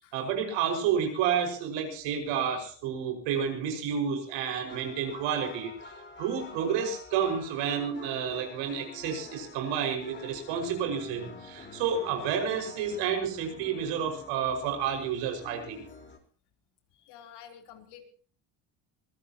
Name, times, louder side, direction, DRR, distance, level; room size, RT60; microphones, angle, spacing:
voice 1, 0.1-5.7 6.2-15.8, right 7 dB, 85° right, 5 dB, 5.8 m, -30 dB
sound 1, 2.0-2.3 2.8-2.9 4.3-4.4 4.7-16.2, left 4 dB, 25° left, 4.3 m, -47 dB
voice 2, 16.9-18.1, left 9 dB, 70° left, 5 dB, 3.8 m, -50 dB
24.0 x 16.5 x 3.0 m, 0.41 s
cardioid pair, 115°, 42 cm